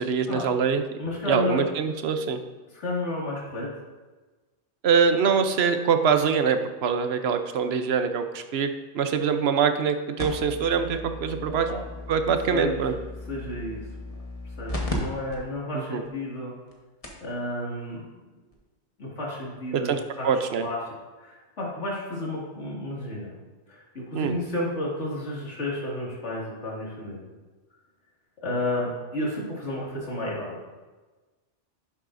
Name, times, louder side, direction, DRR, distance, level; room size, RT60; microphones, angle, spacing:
voice 1, 0.0-0.8 1.3-2.4 4.8-8.7 8.9-11.7 12.1-12.9 15.7-16.0 19.7-20.7 24.1-24.3, right 6 dB, 65° right, 8 dB, 0.9 m, -24 dB
voice 2, 1.0-1.6 2.7-3.7 11.4-11.8 12.5-13.0 13.3-13.8 14.6-16.5 17.2-18.0 19.0-20.3 20.6-20.8 21.2-23.3 23.7-27.3 28.4-30.8, left 1 dB, 70° left, -4 dB, 2.5 m, -31 dB
sound 1, 10.2-15.0 15.3-15.4 16.1-16.2 16.7-16.8 17.0-17.3 18.5-18.6, left 2 dB, 30° left, 1.3 m, -36 dB
11.0 x 7.4 x 2.6 m, 1.2 s
omnidirectional pair, 1.2 m